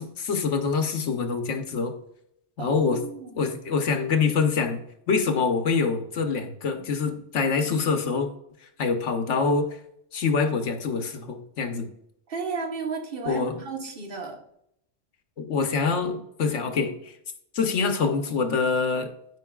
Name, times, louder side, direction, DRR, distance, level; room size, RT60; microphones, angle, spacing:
voice 1, 0.0-1.9 2.6-3.0 3.4-4.8 5.1-8.3 8.8-9.7 10.1-11.9 13.3-13.5 15.4-17.1 17.5-19.1, left 5 dB, 85° left, 6 dB, 1.3 m, -25 dB
voice 2, 2.6-3.4 12.3-14.4, right 4 dB, 50° right, 2 dB, 1.4 m, -33 dB
12.5 x 5.3 x 2.4 m, 0.74 s
omnidirectional pair, 1.2 m